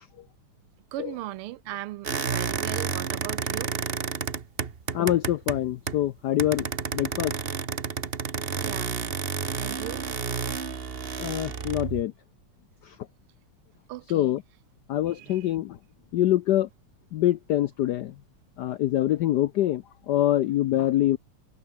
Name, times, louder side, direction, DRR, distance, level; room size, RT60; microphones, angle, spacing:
voice 1, 0.9-3.7 8.6-9.0 9.6-10.0 10.6-11.5 13.9-14.3 15.1-15.5, right 16 dB, 85° right, 1.6 m, -38 dB
sound 1, 2.0-6.1 6.4-12.0, right 5 dB, 35° right, 1.1 m, -31 dB
voice 2, 4.9-6.7 6.9-7.3 11.2-12.1 12.8-12.9 14.1-14.4 14.9-15.8 16.1-16.7 17.1-18.1 18.6-21.2, left 13 dB, 80° left, 0.9 m, -25 dB
omnidirectional pair, 2.4 m